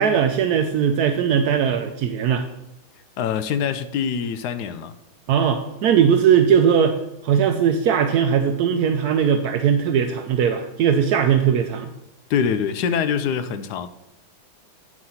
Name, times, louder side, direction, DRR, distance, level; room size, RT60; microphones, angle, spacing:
voice 1, 0.0-2.4 5.3-7.0 7.2-11.9, right 8 dB, 80° right, 0.8 m, -19 dB
voice 2, 3.2-4.9 12.3-13.9, left 7 dB, 70° left, 0.9 m, -24 dB
9.1 x 4.8 x 5.6 m
omnidirectional pair, 2.2 m